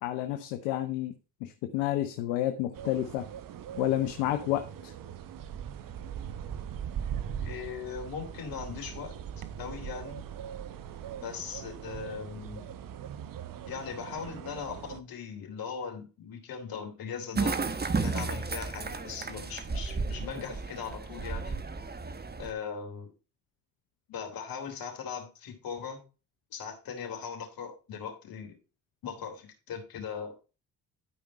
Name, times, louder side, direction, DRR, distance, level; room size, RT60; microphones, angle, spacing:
voice 1, 0.0-1.2 1.4-3.3 3.8-4.9, left 13 dB, 80° left, 8 dB, 0.9 m, -30 dB
sound 1, 2.7-15.0, right 9 dB, 60° right, 1.0 m, -40 dB
voice 2, 7.4-9.1 9.6-10.3 11.2-12.7 13.6-17.6 18.0-21.6 22.4-23.1 24.1-26.0 26.5-28.6 29.0-30.3, left 6 dB, 65° left, 3 dB, 3.4 m, -39 dB
sound 2, 17.3-22.5, right 4 dB, 25° right, 1.2 m, -33 dB
12.5 x 5.2 x 4.2 m, 0.32 s
hypercardioid pair, 55°, 37 cm